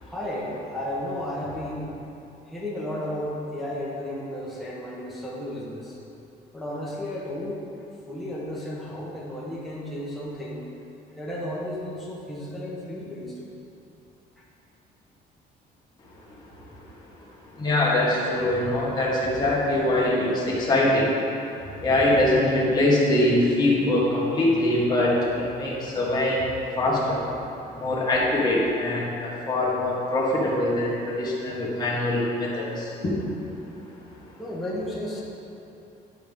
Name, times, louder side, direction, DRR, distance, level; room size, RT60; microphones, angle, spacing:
voice 1, 0.1-1.9 2.5-6.0 6.5-7.6 8.1-10.6 11.2-13.3 34.4-35.2, left 1 dB, ahead, -6 dB, 1.0 m, -33 dB
voice 2, 17.6-21.1 21.8-25.1 25.5-26.5 26.8-27.2 27.7-33.1, left 1 dB, 25° left, -6 dB, 1.6 m, -23 dB
10.5 x 5.1 x 3.6 m, 2.7 s
cardioid pair, 160°, 17 cm